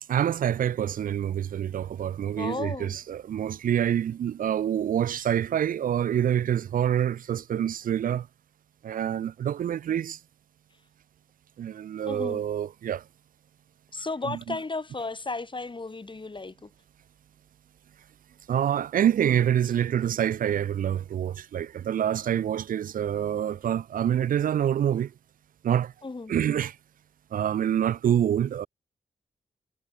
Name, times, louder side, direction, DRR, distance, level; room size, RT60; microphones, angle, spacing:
voice 1, 0.1-8.3 8.8-10.2 11.6-13.0 14.2-14.6 18.5-25.1 25.6-25.9 26.3-26.8 27.3-28.7, right 10 dB, 65° right, 0.4 m, -26 dB
voice 2, 2.4-2.9 12.1-12.4 13.9-16.7 26.0-26.3, left 3 dB, 30° left, 2.0 m, -34 dB
cardioid pair, 55°, 15 cm